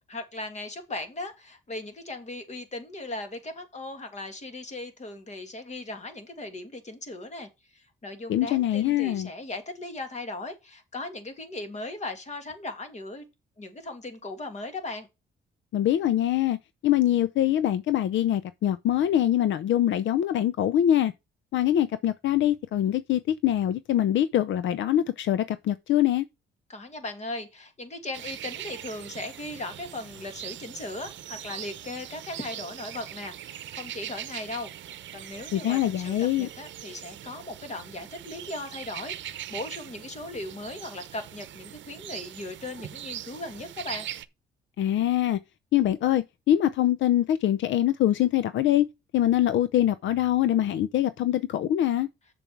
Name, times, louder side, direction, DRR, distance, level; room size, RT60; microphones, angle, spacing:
voice 1, 0.1-13.3 13.6-15.1 26.7-34.7 35.1-44.1, left 2 dB, 35° left, 2.3 m, -38 dB
voice 2, 8.3-9.3 15.7-16.6 16.8-21.1 21.5-26.2 35.5-36.5 44.8-45.4 45.7-48.9 49.1-52.1, left 12 dB, 70° left, 0.6 m, -24 dB
sound 1, 28.1-44.2, right 12 dB, 70° right, 0.8 m, -41 dB
7.0 x 7.0 x 4.6 m
cardioid pair, 90°, 20 cm